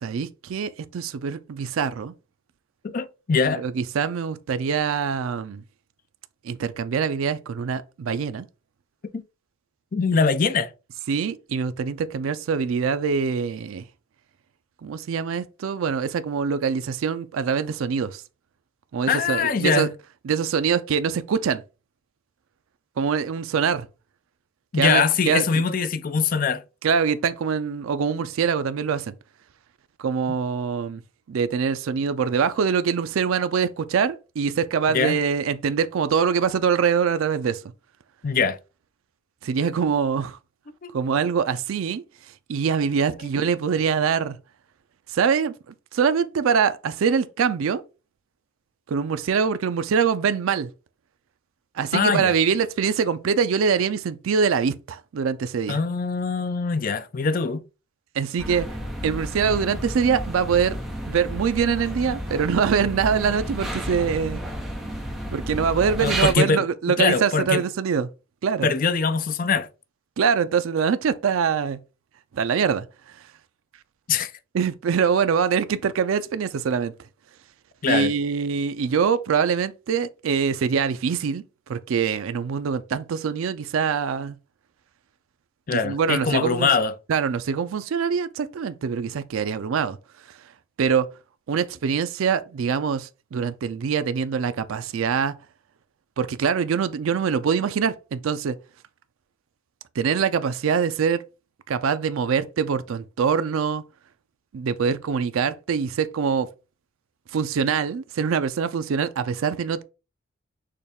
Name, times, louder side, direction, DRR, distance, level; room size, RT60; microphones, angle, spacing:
voice 1, 0.0-2.1 3.5-5.6 6.4-8.5 11.1-13.8 14.8-18.2 18.9-19.9 20.2-21.6 23.0-23.9 24.7-25.6 26.8-29.1 30.0-31.0 31.3-37.6 39.4-40.4 40.9-42.0 42.5-44.4 45.1-45.5 45.9-47.8 48.9-50.7 51.8-55.8 58.1-58.7 59.0-60.8 61.1-64.4 65.3-68.1 68.4-68.7 70.2-71.8 72.3-72.9 74.5-76.9 77.8-81.4 81.7-84.4 85.7-86.7 87.1-90.0 90.8-91.1 91.5-95.4 96.2-98.6 100.0-101.2 101.7-103.8 104.5-106.5 107.3-109.8, right 6 dB, 75° right, 0.4 m, -24 dB
voice 2, 2.8-3.6 9.1-9.2 9.9-10.7 19.1-19.9 24.7-26.6 34.9-35.2 38.2-38.6 40.8-40.9 51.9-52.3 55.7-57.6 66.0-66.6 67.0-67.6 68.6-69.7 74.1-74.3 77.8-78.1 85.7-87.0, left 5 dB, 40° left, 0.4 m, -22 dB
sound 1, 58.4-66.3, equal, ahead, 0.9 m, -31 dB
6.5 x 2.3 x 3.5 m
head